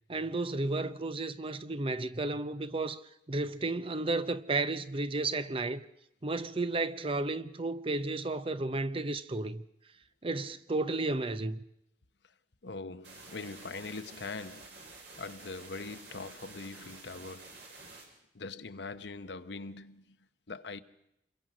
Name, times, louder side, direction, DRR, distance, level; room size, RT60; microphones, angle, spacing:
voice 1, 0.1-5.8 6.2-9.6 10.2-11.6, right 2 dB, 30° right, 0.8 m, -33 dB
voice 2, 12.6-14.9 15.2-17.5 18.3-20.2 20.5-20.8, left 3 dB, 75° left, 1.0 m, -42 dB
sound 1, 13.0-18.0, right 3 dB, 70° right, 7.3 m, -50 dB
27.5 x 22.0 x 6.2 m
head